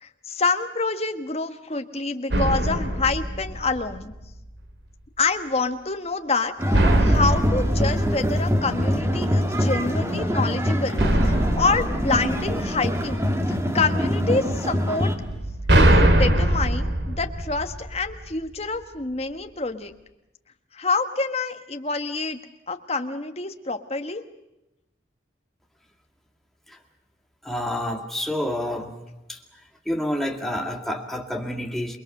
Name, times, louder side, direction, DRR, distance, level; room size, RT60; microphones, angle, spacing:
voice 1, 0.0-4.1 5.2-15.1 15.9-19.9 20.7-22.4 22.7-24.2, left 3 dB, 35° left, 7 dB, 1.4 m, -27 dB
sound 1, 2.3-4.2 6.7-9.1 11.0-13.2 15.2-18.3, right 1 dB, 65° right, 2.4 m, -22 dB
sound 2, 6.6-15.2, equal, 15° right, 1.8 m, -24 dB
voice 2, 27.4-28.9 29.3-29.4 29.9-32.0, left 1 dB, ahead, 2 dB, 2.3 m, -28 dB
28.0 x 21.5 x 6.6 m, 0.94 s
head